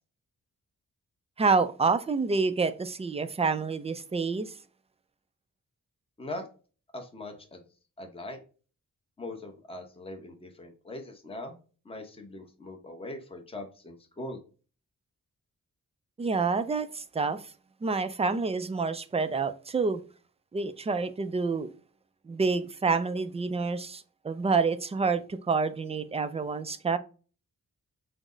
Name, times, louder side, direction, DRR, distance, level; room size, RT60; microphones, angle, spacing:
voice 1, 1.4-4.5 16.2-17.5 17.8-20.0 20.5-21.7 22.3-27.0, right 4 dB, 20° right, 0.3 m, -28 dB
voice 2, 6.9-7.6 8.0-8.4 9.2-11.6 11.8-14.4, left 1 dB, 15° left, 0.8 m, -41 dB
6.0 x 2.0 x 3.7 m
wide cardioid pair, 135°, 33 cm